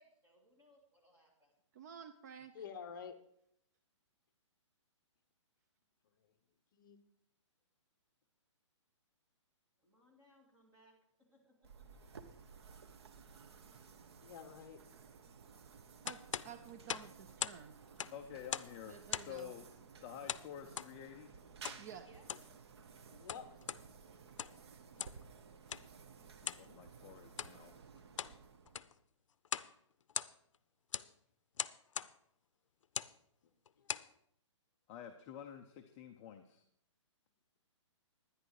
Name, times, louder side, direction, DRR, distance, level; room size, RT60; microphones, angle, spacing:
voice 1, 0.0-1.5 9.8-12.2 22.0-22.2, equal, 15° right, -3 dB, 2.3 m, -67 dB
voice 2, 1.7-2.5 16.0-17.8 18.9-19.5 21.8-22.1, right 7 dB, 35° right, 9 dB, 0.6 m, -52 dB
voice 3, 2.5-3.2 6.7-7.0 14.2-14.8 16.4-16.5 23.1-23.6 24.5-24.6, left 7 dB, 40° left, 10 dB, 0.9 m, -49 dB
sound 1, 11.6-29.0, right 5 dB, 55° right, 1.0 m, -56 dB
sound 2, 16.0-17.6 17.9-18.8 19.1-19.4 20.3-20.9 21.6-21.8 22.2-22.5 23.1-23.8 24.2-24.6 25.0-25.2 25.7-25.9 26.4-26.7 27.3-27.5 28.0-28.4 28.7-29.0 29.4-29.7 30.0-30.5 30.9-31.1 31.6-32.1 32.8-33.1 33.7-34.1, left 8 dB, 80° left, 0.5 m, -41 dB
voice 4, 18.1-19.7 20.0-21.4 26.4-27.8 34.9-36.6, left 9 dB, 15° left, 5 dB, 0.4 m, -50 dB
11.0 x 10.5 x 4.8 m, 0.72 s
hypercardioid pair, 165°, 16 cm